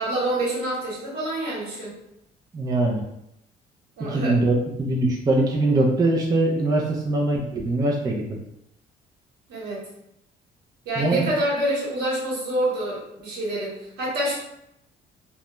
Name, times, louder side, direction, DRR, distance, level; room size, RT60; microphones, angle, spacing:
voice 1, 0.0-1.9 4.0-4.4 9.5-9.8 10.8-14.4, right 1 dB, 75° right, -5 dB, 1.1 m, -27 dB
voice 2, 2.5-3.0 4.0-8.4 11.0-11.2, right 2 dB, 20° right, -2 dB, 0.4 m, -22 dB
2.3 x 2.1 x 2.9 m, 0.81 s
cardioid pair, 110°, 17 cm